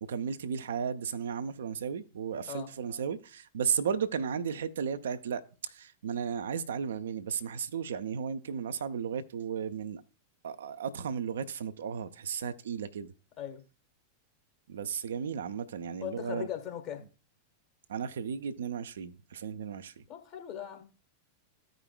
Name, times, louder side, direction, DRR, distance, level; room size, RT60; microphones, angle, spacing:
voice 1, 0.0-10.0 10.4-13.1 14.7-16.5 17.9-20.0, right 7 dB, 65° right, 0.4 m, -34 dB
voice 2, 16.0-17.0 20.1-20.8, left 10 dB, 40° left, 1.2 m, -39 dB
14.5 x 5.0 x 2.2 m
figure-of-eight pair, 90°, 0 cm